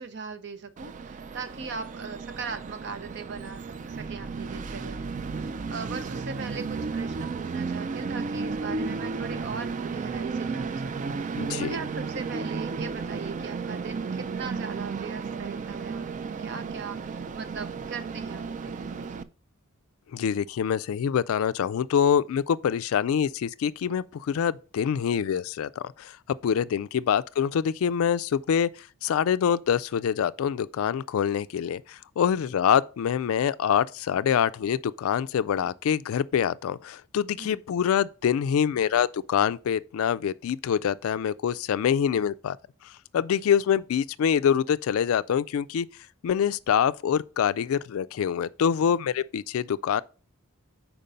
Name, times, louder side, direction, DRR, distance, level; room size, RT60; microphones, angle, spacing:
voice 1, 0.0-16.1 16.4-19.3 37.4-37.6, right 5 dB, 55° right, 0.7 m, -39 dB
Train, 0.8-19.2, right 4 dB, 35° right, 0.3 m, -33 dB
voice 2, 11.4-11.8 20.1-28.7 29.0-42.6 43.1-45.9 46.2-50.0, left 8 dB, 70° left, 0.3 m, -25 dB
5.2 x 4.5 x 5.5 m
head